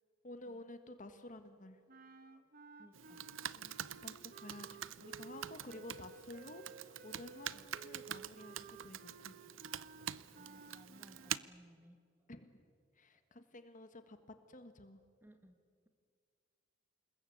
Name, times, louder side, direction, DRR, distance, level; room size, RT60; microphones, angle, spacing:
voice 1, 0.2-1.8 3.5-9.4 12.3-12.6 12.9-14.2 14.5-15.0, left 1 dB, 40° left, 9 dB, 1.7 m, -52 dB
sound 1, 1.9-11.5, right 4 dB, 45° right, 1.5 m, -56 dB
voice 2, 2.3-3.3 7.5-7.7 9.9-12.0 13.1-13.4 15.2-15.9, equal, 10° right, 7 dB, 2.0 m, -63 dB
Computer keyboard, 2.9-11.4, right 10 dB, 75° right, 0.6 m, -46 dB
28.0 x 21.0 x 8.8 m, 2.1 s
head